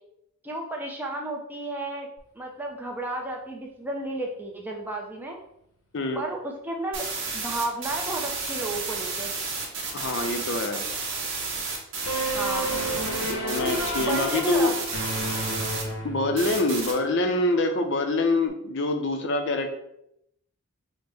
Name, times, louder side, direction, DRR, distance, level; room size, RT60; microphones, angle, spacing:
voice 1, 0.4-2.1 2.4-5.4 6.1-7.0 7.3-9.3 12.3-12.7 14.0-14.8, right 2 dB, 10° right, 0 dB, 0.4 m, -32 dB
sound 1, 6.9-15.8 16.4-16.9, right 4 dB, 55° right, 1.0 m, -32 dB
voice 2, 9.9-10.8 13.3-14.7 16.0-19.8, left 2 dB, 55° left, 6 dB, 0.5 m, -25 dB
sound 2, 12.1-16.7, right 1 dB, 80° left, 0.8 m, -31 dB
5.2 x 2.1 x 3.3 m, 0.77 s
head